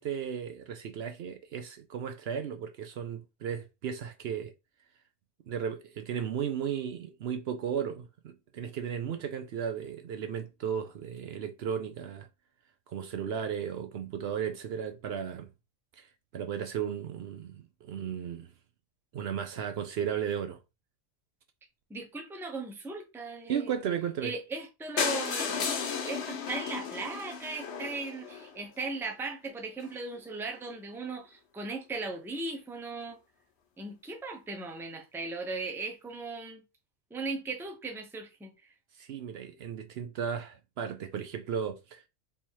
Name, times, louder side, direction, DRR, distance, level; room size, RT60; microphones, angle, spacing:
voice 1, 0.0-4.5 5.5-12.3 12.9-15.5 16.0-16.1 16.3-18.5 19.1-20.6 23.5-24.3 39.0-42.1, right 8 dB, 65° right, 0.8 m, -35 dB
voice 2, 21.9-23.7 24.2-33.2 33.8-36.6 37.1-38.7, right 3 dB, 5° right, 0.6 m, -38 dB
sound 1, 25.0-28.9 29.5-29.6 29.8-30.0 30.2-30.3 30.5-30.6, left 6 dB, 65° left, 1.1 m, -34 dB
3.4 x 2.8 x 4.5 m
omnidirectional pair, 1.2 m